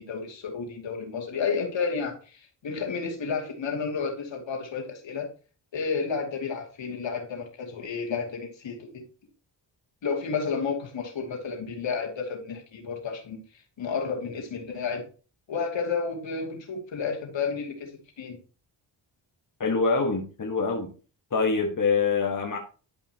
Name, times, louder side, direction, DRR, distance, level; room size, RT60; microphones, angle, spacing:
voice 1, 0.0-5.3 5.7-9.0 10.0-13.4 13.8-15.1 15.5-17.9 18.2-18.4, left 5 dB, 65° left, 1 dB, 2.5 m, -31 dB
voice 2, 19.6-20.9 21.3-22.6, left 4 dB, 40° left, 2 dB, 1.6 m, -25 dB
11.5 x 5.4 x 2.9 m, 0.37 s
supercardioid pair, 55°, 49 cm